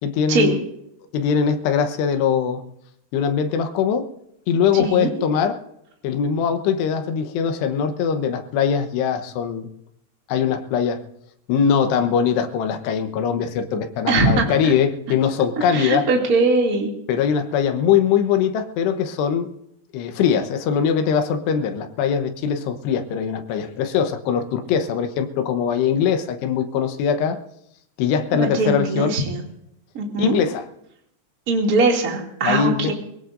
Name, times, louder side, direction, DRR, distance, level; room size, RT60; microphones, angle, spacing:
voice 1, 0.0-0.6 1.1-2.6 3.1-4.1 4.5-5.6 6.0-9.7 10.3-11.0 11.5-16.1 17.1-19.5 19.9-27.4 28.0-29.2 30.2-30.6 32.4-32.9, left 7 dB, 80° left, 7 dB, 3.2 m, -21 dB
voice 2, 4.7-5.1 14.1-14.5 15.7-16.9 28.3-29.4 29.9-30.4 31.5-32.9, right 3 dB, 30° right, 0 dB, 2.1 m, -20 dB
23.5 x 17.5 x 2.6 m, 0.78 s
omnidirectional pair, 4.9 m